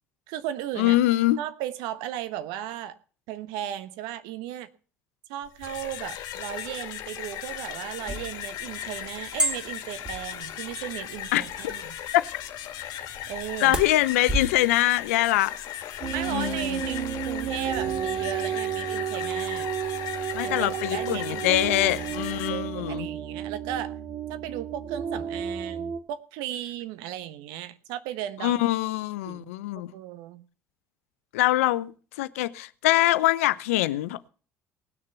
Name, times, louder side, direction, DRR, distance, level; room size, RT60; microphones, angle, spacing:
voice 1, 0.3-1.0 1.4-3.0 3.3-4.7 5.3-12.0 13.3-13.8 16.1-19.7 20.4-24.0 24.3-28.6 29.2-29.5 29.9-30.4, right 11 dB, 75° right, 1.1 m, -36 dB
voice 2, 0.8-1.4 11.3-11.4 12.1-12.2 13.6-15.5 16.3-16.8 20.3-23.1 28.4-29.9 31.3-31.9 32.2-34.3, left 16 dB, 85° left, 0.6 m, -23 dB
sound 1, 5.5-22.5, left 11 dB, 65° left, 1.7 m, -37 dB
sound 2, 8.1-14.6, right 1 dB, 15° right, 3.1 m, -34 dB
sound 3, 16.0-26.0, right 8 dB, 50° right, 2.1 m, -32 dB
18.5 x 6.6 x 6.9 m
hypercardioid pair, 60°, 7 cm